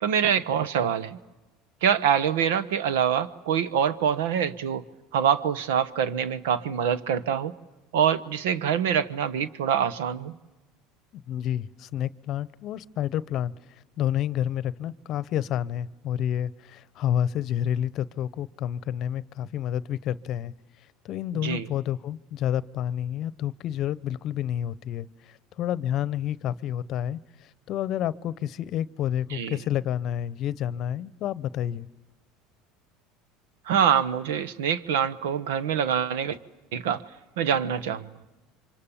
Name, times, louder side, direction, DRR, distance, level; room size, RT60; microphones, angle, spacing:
voice 1, 0.0-1.2 1.8-4.8 5.1-7.5 7.9-10.3 21.4-21.7 29.3-29.6 33.7-36.4 36.7-37.0 37.4-38.1, right 8 dB, 85° right, 16 dB, 1.1 m, -25 dB
voice 2, 11.3-13.5 14.0-20.5 21.0-31.9, left 10 dB, 50° left, 19 dB, 0.8 m, -29 dB
28.5 x 25.0 x 7.2 m, 1.1 s
supercardioid pair, 105°, 0 cm